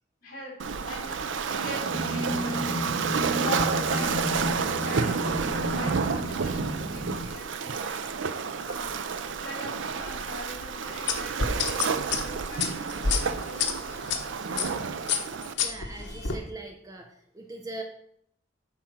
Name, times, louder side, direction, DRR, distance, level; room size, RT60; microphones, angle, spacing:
voice 1, 0.2-0.5 0.8-1.2 1.6-8.1 8.6-9.0 9.4-14.1, left 1 dB, 45° left, -3 dB, 3.2 m, -42 dB
Waves surf, 0.6-15.5, right 5 dB, 85° right, 0.5 m, -30 dB
sound 1, 1.9-7.1, equal, 55° right, 1.7 m, -33 dB
sound 2, 11.1-14.2 14.6-14.8 15.1-16.4, left 6 dB, 75° left, 1.1 m, -28 dB
voice 2, 15.6-17.1 17.3-17.8, right 2 dB, 20° right, 3 dB, 0.7 m, -40 dB
8.6 x 4.4 x 6.1 m, 0.71 s
head